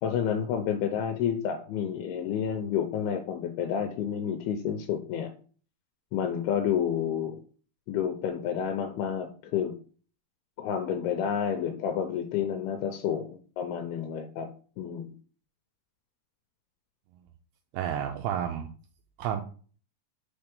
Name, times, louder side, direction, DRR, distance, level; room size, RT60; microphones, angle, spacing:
voice 1, 0.0-5.3 6.1-7.4 7.9-9.8 10.6-14.5 14.8-15.1, left 8 dB, 85° left, 6 dB, 2.6 m, -30 dB
voice 2, 17.7-18.7 19.2-19.4, right 9 dB, 80° right, 4 dB, 2.6 m, -30 dB
5.7 x 4.4 x 5.2 m, 0.40 s
omnidirectional pair, 4.5 m